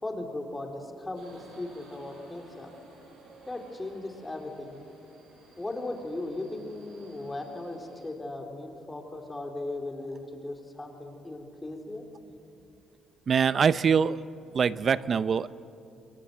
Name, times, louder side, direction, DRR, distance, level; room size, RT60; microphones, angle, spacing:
voice 1, 0.0-2.7 3.5-4.8 5.6-12.0, left 2 dB, 15° left, 3 dB, 3.6 m, -37 dB
Subway metro underground, 1.1-8.1, right 3 dB, 70° right, 7.1 m, -55 dB
voice 2, 13.3-14.2 14.5-15.6, right 6 dB, 40° right, 16 dB, 0.7 m, -24 dB
28.5 x 22.5 x 7.8 m, 2.6 s
cardioid pair, 105°, 0 cm